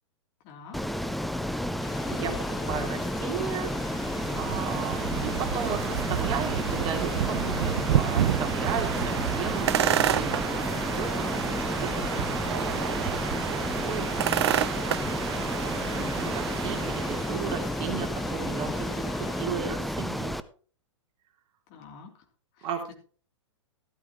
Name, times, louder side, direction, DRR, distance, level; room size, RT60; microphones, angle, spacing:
voice 1, 0.4-0.8 15.8-16.2 21.7-22.1 22.6-22.7, left 6 dB, 40° left, 3 dB, 3.1 m, -44 dB
Ocean, 0.7-20.4, equal, ahead, 0.5 m, -31 dB
sound 1, 1.8-19.5, left 7 dB, 25° left, 1.5 m, -42 dB
voice 2, 2.1-3.7 4.0-14.6 15.6-19.0 19.3-20.4 22.6-22.9, right 8 dB, 35° right, 3 dB, 2.8 m, -36 dB
sound 2, 3.5-17.6, right 11 dB, 55° right, 0.6 m, -30 dB
13.5 x 13.0 x 3.0 m, 0.41 s
figure-of-eight pair, 110°, 16 cm